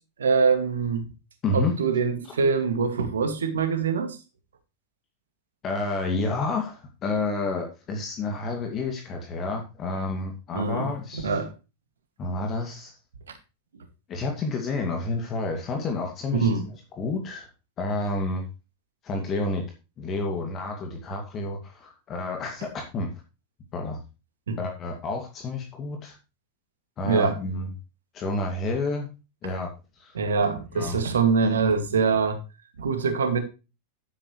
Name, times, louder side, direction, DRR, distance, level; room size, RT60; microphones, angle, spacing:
voice 1, 0.2-1.1 1.5-4.2 10.5-10.9 11.2-11.5 16.4-16.7 24.5-24.6 27.1-27.4 30.1-32.4 32.8-33.4, right 5 dB, 65° right, 2.2 m, -24 dB
voice 2, 5.6-11.3 12.2-12.9 14.1-16.5 17.0-17.5 17.8-18.4 19.0-19.6 20.0-23.1 23.7-24.0 24.6-26.2 27.0-27.7 28.1-29.1 29.4-29.7 30.0-30.1 30.7-31.0, left 3 dB, 30° left, 2.4 m, -29 dB
11.5 x 9.6 x 3.3 m
figure-of-eight pair, 90°, 0 cm